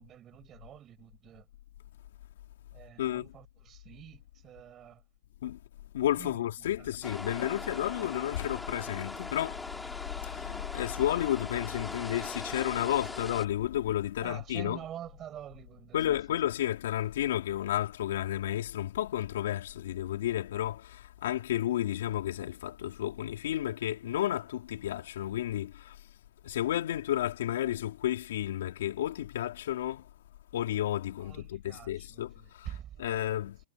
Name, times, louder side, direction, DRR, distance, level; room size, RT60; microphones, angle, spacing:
voice 1, 0.0-1.4 2.7-5.0 6.2-6.3 14.2-16.0 31.3-32.2 32.7-32.9, right 11 dB, 25° right, 5.4 m, -46 dB
voice 2, 3.0-3.3 5.4-5.6 5.9-14.9 15.9-26.0 26.4-30.1 30.5-33.6, left 12 dB, 70° left, 3.9 m, -32 dB
sound 1, 7.0-13.5, left 2 dB, 5° left, 3.6 m, -41 dB
hypercardioid pair, 145°, 0 cm